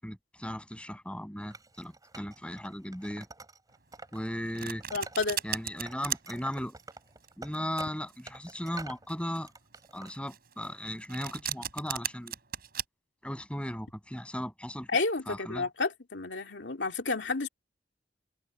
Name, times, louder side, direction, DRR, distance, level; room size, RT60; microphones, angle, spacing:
voice 1, 0.0-3.3 4.1-4.8 5.4-6.7 7.4-9.5 9.9-12.3 13.2-14.9 15.3-15.7, equal, 5° left, 7.7 m, -37 dB
Wood, 1.5-4.2 4.5-5.5 5.8-9.1 9.4-10.1, right 3 dB, 20° right, 5.4 m, -48 dB
Domestic sounds home sounds, 4.1-12.8, right 10 dB, 55° right, 6.4 m, -37 dB
voice 2, 4.9-5.4 14.9-17.5, left 3 dB, 75° left, 2.8 m, -31 dB
head